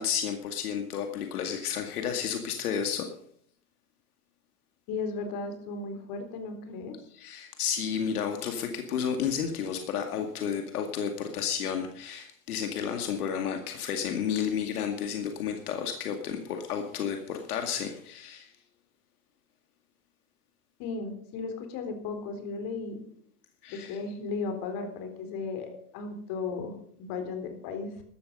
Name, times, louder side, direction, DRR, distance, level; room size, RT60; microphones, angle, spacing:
voice 1, 0.0-3.1 7.1-18.5 23.6-24.0, left 7 dB, 85° left, 5 dB, 2.2 m, -32 dB
voice 2, 4.9-7.0 20.8-23.0 23.7-28.0, left 4 dB, 50° left, 6 dB, 4.1 m, -35 dB
14.5 x 12.5 x 5.5 m, 0.64 s
supercardioid pair, 120°, 44 cm